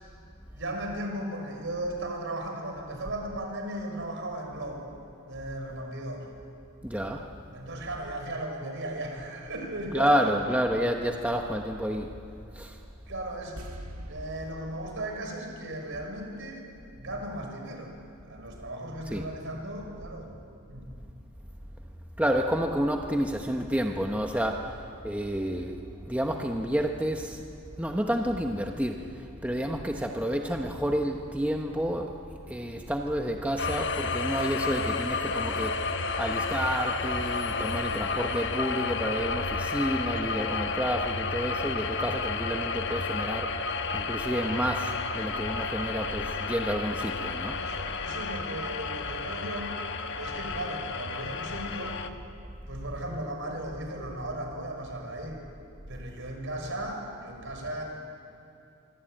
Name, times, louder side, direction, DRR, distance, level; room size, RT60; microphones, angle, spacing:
voice 1, 0.5-4.9 5.3-6.3 7.5-10.3 13.1-13.6 14.1-16.6 16.9-17.9 18.2-20.3 20.7-20.9 47.6-49.8 50.2-52.0 52.7-55.4 55.9-57.8, right 1 dB, 60° right, 3 dB, 5.7 m, -36 dB
voice 2, 6.8-7.3 9.9-12.3 12.5-12.8 19.1-19.3 22.2-27.4 27.8-47.6, equal, 5° right, 2 dB, 1.1 m, -30 dB
sound 1, 13.6-16.8 17.0-17.1, right 1 dB, 80° right, 2.2 m, -45 dB
sound 2, 33.6-52.1, left 4 dB, 55° left, 1.3 m, -31 dB
25.5 x 24.0 x 9.0 m, 2.5 s
head